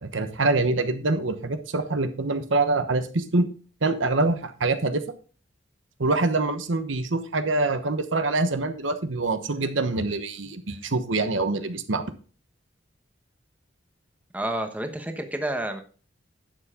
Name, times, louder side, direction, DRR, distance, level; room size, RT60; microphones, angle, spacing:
voice 1, 0.0-3.5 3.8-5.0 6.0-12.0, right 2 dB, 75° right, 9 dB, 1.1 m, -25 dB
voice 2, 14.3-15.8, right 1 dB, 10° right, 6 dB, 1.0 m, -29 dB
11.0 x 7.1 x 3.7 m, 0.38 s
head